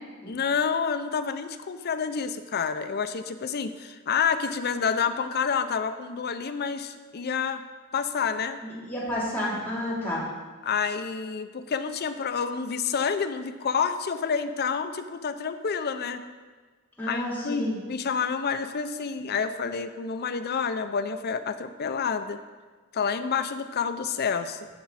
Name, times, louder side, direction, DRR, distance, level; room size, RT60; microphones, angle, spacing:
voice 1, 0.3-7.6 7.9-8.6 10.6-16.2 17.1-22.4 22.9-24.7, left 6 dB, 50° left, 10 dB, 0.5 m, -28 dB
voice 2, 8.6-10.2 17.0-17.8, left 1 dB, 10° left, -8 dB, 3.2 m, -30 dB
14.5 x 6.0 x 4.1 m, 1.4 s
head